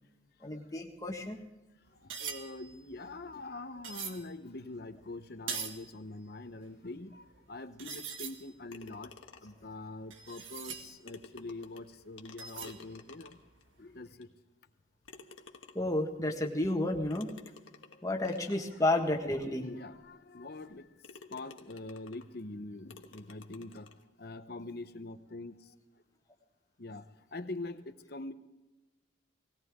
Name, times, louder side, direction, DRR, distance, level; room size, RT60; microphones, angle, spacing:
voice 1, 0.4-1.4 15.7-17.3 18.0-19.7, left 1 dB, 15° left, 2 dB, 1.6 m, -31 dB
sound 1, 1.9-4.3 4.9-6.0 6.2-6.3 7.0-7.1 7.3-7.4 7.8-8.5 9.1-11.5 12.4-13.0 13.3-13.6, right 7 dB, 90° right, 1.6 m, -42 dB
voice 2, 2.0-9.1 9.4-13.4 13.8-14.3 17.9-18.0 19.4-20.9 21.3-23.9 24.2-25.7 26.8-27.0 27.3-28.3, left 2 dB, 50° left, 10 dB, 0.9 m, -44 dB
sound 2, 8.7-9.7 10.7-10.8 11.1-13.6 14.2-14.3 15.1-16.0 17.1-18.6 19.3-19.4 19.9-20.0 20.6-20.7 21.0-22.3 22.9-24.0, left 4 dB, 85° left, 1.4 m, -53 dB
19.0 x 17.5 x 3.7 m, 1.1 s
head